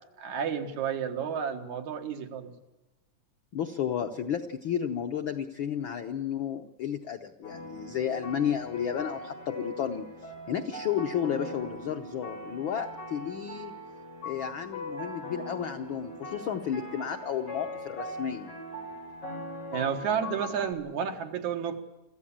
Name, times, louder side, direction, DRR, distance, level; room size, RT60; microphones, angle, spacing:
voice 1, 0.2-2.5 19.7-21.8, right 7 dB, 75° right, 5 dB, 2.9 m, -31 dB
voice 2, 3.5-13.7 14.2-18.5, left 8 dB, 90° left, 7 dB, 1.0 m, -32 dB
sound 1, 7.4-20.7, left 1 dB, 50° left, 5.2 m, -41 dB
25.0 x 15.0 x 8.7 m, 1.0 s
omnidirectional pair, 3.4 m